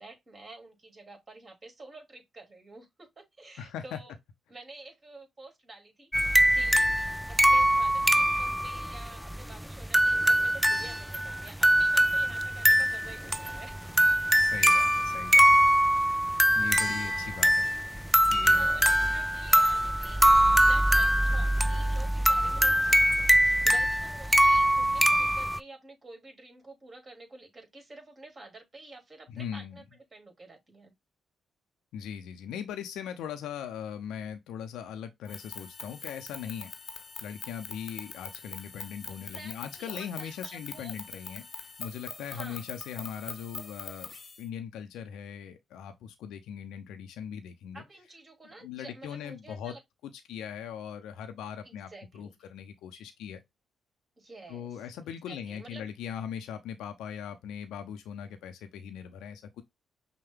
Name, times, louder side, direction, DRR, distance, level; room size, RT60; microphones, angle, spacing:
voice 1, 0.0-4.1 4.5-7.0 7.3-13.8 18.4-20.2 20.6-29.8 30.1-30.9 39.1-41.0 42.3-42.6 47.7-49.8 51.6-52.4 54.2-54.9 55.3-55.9, right 2 dB, 35° right, 2.3 m, -49 dB
voice 2, 3.6-4.0 14.4-15.7 16.5-17.7 18.3-18.9 29.3-29.8 31.9-36.7 37.2-47.8 48.4-49.7 50.0-53.4 54.5-59.6, left 8 dB, 75° left, 0.6 m, -40 dB
sound 1, 6.1-25.6, right 1 dB, 5° right, 0.3 m, -23 dB
sound 2, 35.2-44.4, left 4 dB, 45° left, 0.9 m, -43 dB
5.8 x 2.2 x 3.5 m
hypercardioid pair, 45°, 0 cm